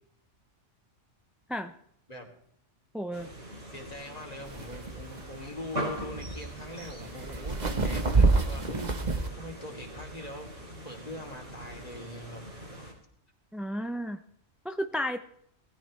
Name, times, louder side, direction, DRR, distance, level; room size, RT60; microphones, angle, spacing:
voice 1, 2.9-3.3 13.5-14.2 14.6-15.2, equal, ahead, 7 dB, 0.5 m, -32 dB
sound 1, 3.1-12.9, right 1 dB, 80° right, 5.5 m, -42 dB
voice 2, 3.7-10.5 10.8-12.4, left 1 dB, 30° left, 2 dB, 3.1 m, -43 dB
sound 2, 4.5-9.3, right 3 dB, 35° right, 1.3 m, -27 dB
19.5 x 15.0 x 3.3 m, 0.69 s
omnidirectional pair, 1.3 m